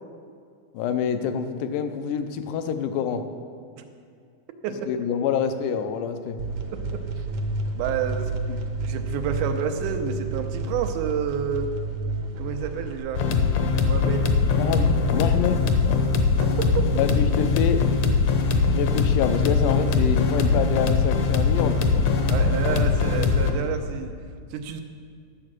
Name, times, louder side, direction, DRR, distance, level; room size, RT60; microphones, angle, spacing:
voice 1, 0.7-3.2 4.9-6.4 8.5-8.6 14.6-16.0 17.0-17.9 18.7-22.1 24.7-24.8, left 7 dB, 85° left, 9 dB, 2.3 m, -27 dB
sound 1, 6.4-13.0, right 2 dB, 65° right, 1.8 m, -30 dB
voice 2, 6.7-7.2 7.7-8.3 8.8-11.7 12.4-13.2 13.8-14.3 22.3-24.1 24.5-24.8, right 8 dB, 85° right, 6 dB, 2.3 m, -29 dB
sound 2, 13.1-23.5, left 4 dB, 70° left, 1.8 m, -21 dB
11.5 x 7.4 x 6.1 m, 2.3 s
omnidirectional pair, 3.7 m